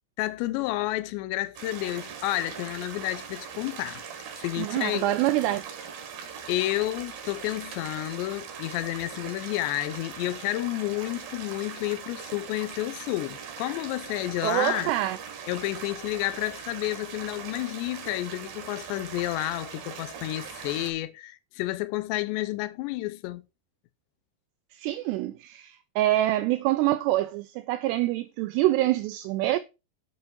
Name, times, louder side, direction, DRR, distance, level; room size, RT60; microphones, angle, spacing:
voice 1, 0.2-4.0 4.4-5.2 6.5-14.9 15.5-23.4, left 17 dB, 85° left, 2.9 m, -30 dB
sound 1, 1.6-20.9, right 7 dB, 65° right, 3.2 m, -41 dB
voice 2, 4.6-5.6 14.4-15.2 24.8-29.6, right 15 dB, 80° right, 2.6 m, -25 dB
8.0 x 5.4 x 5.3 m
omnidirectional pair, 5.0 m